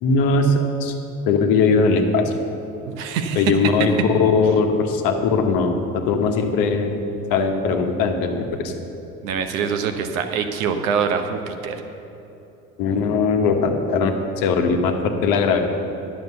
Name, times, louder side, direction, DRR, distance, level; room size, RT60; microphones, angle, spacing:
voice 1, 0.0-0.9 1.3-2.3 3.4-3.9 4.2-6.9 7.3-8.7 12.8-15.6, left 4 dB, 55° left, 4 dB, 1.3 m, -20 dB
voice 2, 2.9-3.5 9.2-11.8, right 6 dB, 70° right, 7 dB, 1.0 m, -24 dB
11.0 x 6.8 x 6.8 m, 2.9 s
figure-of-eight pair, 60°, 41 cm